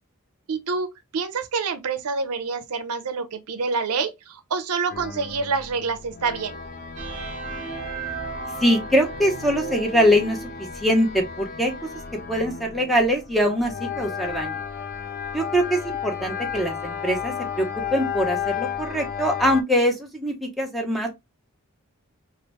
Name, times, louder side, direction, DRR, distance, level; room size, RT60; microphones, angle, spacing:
voice 1, 0.5-0.9 1.1-6.6, right 4 dB, 90° right, 0.6 m, -27 dB
sound 1, 4.9-19.6, left 7 dB, 40° left, 0.4 m, -33 dB
sound 2, 7.0-10.7, right 5 dB, 35° right, 0.8 m, -35 dB
voice 2, 8.6-10.4 10.8-11.7 12.3-14.6 15.3-17.7 17.9-21.1, equal, ahead, 0.7 m, -23 dB
2.9 x 2.6 x 3.1 m
head